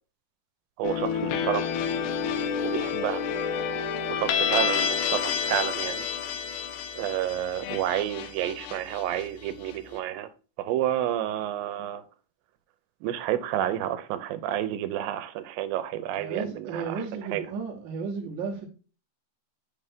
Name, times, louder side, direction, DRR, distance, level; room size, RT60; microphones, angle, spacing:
sound 1, 0.8-9.7, left 7 dB, 80° left, 1.9 m, -29 dB
voice 1, 0.8-1.7 2.6-3.3 4.1-6.1 7.0-10.3 10.6-12.0 13.0-17.0 17.3-17.5, right 11 dB, 90° right, 2.3 m, -30 dB
voice 2, 16.1-18.6, right 5 dB, 60° right, 1.2 m, -34 dB
8.4 x 3.3 x 3.5 m
omnidirectional pair, 4.0 m